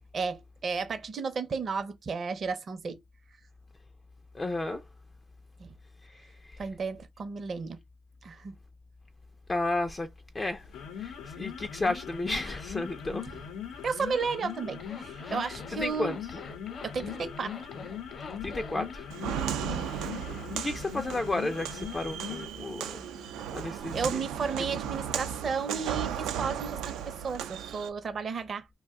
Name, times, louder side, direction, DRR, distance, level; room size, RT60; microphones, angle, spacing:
voice 1, 0.1-3.0 5.6-5.7 6.6-7.8 8.2-8.5 13.8-16.2 16.8-17.6 19.7-19.9 23.9-28.6, right 5 dB, 45° right, 0.6 m, -33 dB
voice 2, 4.3-4.8 6.0-6.6 9.5-10.1 10.3-10.6 11.0-13.3 15.2-16.2 18.2-19.1 19.9-24.2, left 2 dB, 20° left, 0.4 m, -33 dB
sound 1, 10.6-22.6, left 8 dB, 85° left, 0.6 m, -41 dB
Zipper (clothing), 14.7-19.0, left 4 dB, 45° left, 0.8 m, -45 dB
Walk footsteps, 19.1-27.9, right 9 dB, 90° right, 0.4 m, -35 dB
2.5 x 2.2 x 3.5 m
cardioid pair, 100°, 0 cm